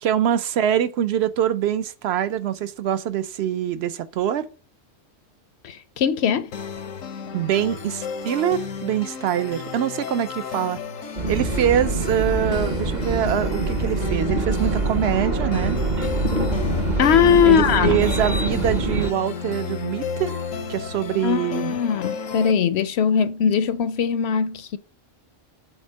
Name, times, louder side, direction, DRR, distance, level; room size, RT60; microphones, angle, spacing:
voice 1, 0.0-4.5 7.3-10.8 11.3-15.8 17.5-20.4 20.7-21.7, right 10 dB, 65° right, 0.8 m, -24 dB
voice 2, 5.6-6.5 17.0-18.0 21.2-24.8, left 8 dB, 65° left, 0.7 m, -20 dB
sound 1, 6.5-22.5, left 6 dB, 85° left, 1.2 m, -33 dB
sound 2, 11.2-19.1, right 2 dB, 40° right, 1.0 m, -24 dB
8.0 x 4.2 x 5.5 m
omnidirectional pair, 1.3 m